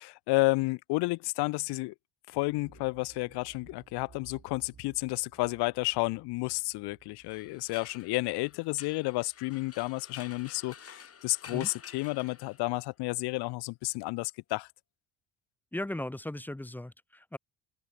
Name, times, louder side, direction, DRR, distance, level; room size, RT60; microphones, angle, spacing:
voice 1, 0.0-1.9 2.3-14.7, left 23 dB, 70° left, 0.5 m, -31 dB
sound 1, 2.5-10.2 10.5-10.6, right 6 dB, 35° right, 7.8 m, -59 dB
sound 2, 7.2-12.9, left 6 dB, 35° left, 2.9 m, -51 dB
voice 2, 15.7-17.4, left 1 dB, 5° left, 0.6 m, -37 dB
open air
supercardioid pair, 90°, 42 cm